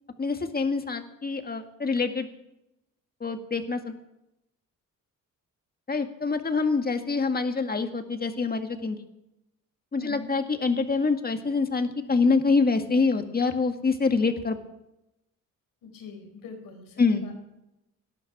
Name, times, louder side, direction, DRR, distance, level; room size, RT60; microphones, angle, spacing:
voice 1, 0.2-2.3 3.2-4.0 5.9-9.0 9.9-14.6 17.0-17.2, left 4 dB, 25° left, 7 dB, 1.9 m, -25 dB
voice 2, 10.0-10.3 15.8-17.3, left 4 dB, 85° left, 5 dB, 4.5 m, -43 dB
18.5 x 11.5 x 6.1 m, 0.89 s
cardioid pair, 90°, 33 cm